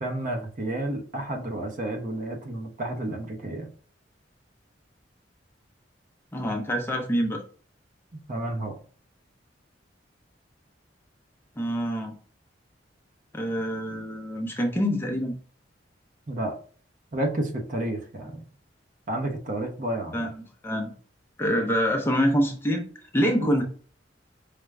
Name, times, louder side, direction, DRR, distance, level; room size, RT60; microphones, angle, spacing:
voice 1, 0.0-3.7 8.1-8.8 16.3-16.6 17.1-18.5 19.1-20.3 23.4-23.5, right 1 dB, 45° right, 3 dB, 0.8 m, -31 dB
voice 2, 6.3-7.4 11.6-12.1 13.3-15.3 20.1-20.9 21.4-22.8 23.1-23.6, equal, 15° left, 2 dB, 0.6 m, -26 dB
4.9 x 2.2 x 3.2 m, 0.43 s
head